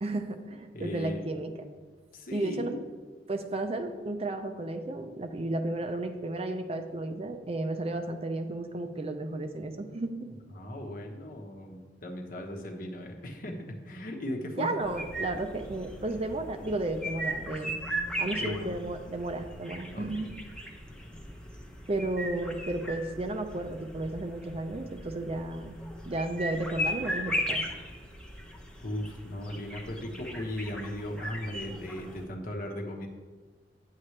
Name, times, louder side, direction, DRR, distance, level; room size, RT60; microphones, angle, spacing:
voice 1, 0.0-1.5 2.3-2.8 3.3-10.2 14.6-17.8 18.2-20.3 21.9-25.8 26.1-27.7, right 2 dB, 35° right, 6 dB, 0.6 m, -33 dB
voice 2, 0.7-1.3 2.1-2.8 10.5-14.7 18.4-18.7 19.9-20.3 28.8-33.1, left 1 dB, 50° left, 2 dB, 1.1 m, -37 dB
sound 1, 14.8-32.2, equal, 5° left, 0.8 m, -38 dB
9.7 x 7.5 x 3.2 m, 1.4 s
head